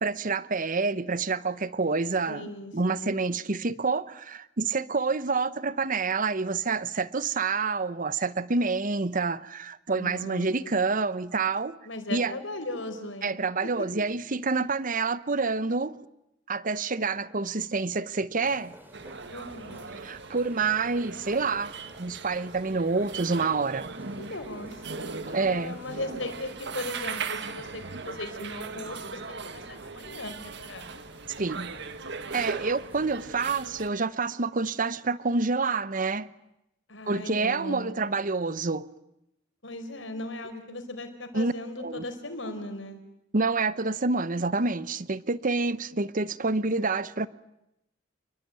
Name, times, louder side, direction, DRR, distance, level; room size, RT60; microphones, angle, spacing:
voice 1, 0.0-11.8 12.1-12.3 13.2-16.0 16.5-18.7 20.0-23.9 25.3-25.8 31.4-31.7 32.3-36.3 37.1-38.9 41.3-41.5 41.8-42.0 43.3-47.3, right 4 dB, 45° right, 1.0 m, -28 dB
voice 2, 2.3-3.2 10.0-10.8 11.8-13.9 19.3-19.8 24.2-30.9 36.9-37.9 39.6-43.0, left 2 dB, 85° left, 4.8 m, -38 dB
sound 1, 18.4-33.1, right 1 dB, 10° right, 3.9 m, -54 dB
sound 2, 18.9-33.9, right 4 dB, 65° right, 1.7 m, -39 dB
29.0 x 22.0 x 9.2 m
head